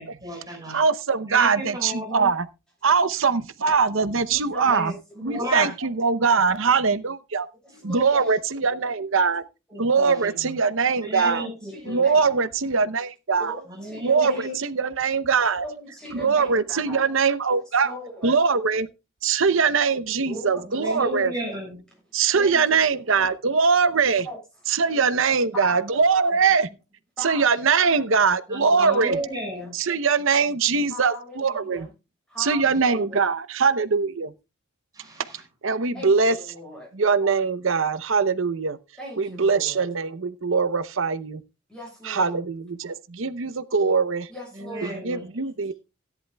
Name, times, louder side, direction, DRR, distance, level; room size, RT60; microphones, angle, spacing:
voice 1, 0.0-0.8 1.3-2.3 4.6-4.9 5.2-5.7 7.7-8.2 9.7-10.5 11.0-12.0 13.8-14.6 16.2-16.3 20.7-21.8 28.5-29.7 34.9-35.4 42.1-42.3 44.5-45.3, equal, 15° right, 5.4 m, -33 dB
voice 2, 0.7-2.5 2.8-4.9 5.2-7.5 7.8-9.4 9.8-11.4 11.9-13.5 14.0-15.6 16.1-17.9 18.2-18.9 19.2-21.3 22.1-24.2 24.7-26.7 27.2-29.2 29.8-31.9 32.4-34.3 35.6-36.3 36.9-38.8 39.2-41.4 42.1-44.3 44.8-45.7, right 5 dB, 60° right, 0.7 m, -22 dB
voice 3, 4.3-4.9 5.3-5.6 7.6-8.4 11.2-12.3 13.3-14.4 15.5-17.2 17.5-18.4 20.2-21.6 22.4-22.8 23.1-23.3 24.2-24.4 25.5-26.0 27.2-27.7 28.8-29.7 30.9-31.9 32.3-33.3 35.9-36.9 39.0-39.9 41.7-42.5 44.3-45.0, equal, 5° left, 6.9 m, -39 dB
17.0 x 10.5 x 2.3 m
head